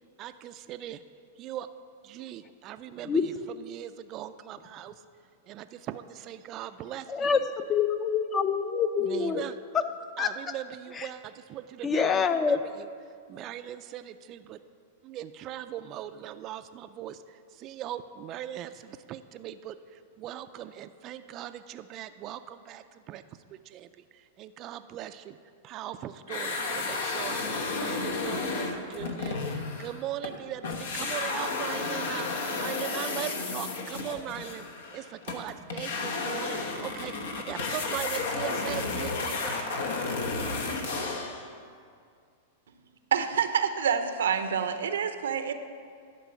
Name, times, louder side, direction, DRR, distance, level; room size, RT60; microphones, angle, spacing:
voice 1, 0.2-1.0 1.4-1.7 2.0-4.9 5.4-7.4 9.0-9.6 10.2-12.9 13.3-14.6 15.0-23.2 23.5-25.4 25.6-27.4 27.8-34.7 34.9-39.8, right 12 dB, 35° right, 10 dB, 0.3 m, -40 dB
voice 2, 7.1-9.4 9.7-9.8 10.2-10.3 11.0-11.1 11.8-12.6, left 6 dB, 25° left, 11 dB, 0.5 m, -26 dB
sound 1, 26.3-30.4 30.6-41.4, left 3 dB, 80° left, 1.0 m, -32 dB
voice 3, 43.1-45.5, right 7 dB, 90° right, 9 dB, 0.6 m, -27 dB
11.5 x 4.6 x 6.3 m, 2.2 s
hypercardioid pair, 130°, 0 cm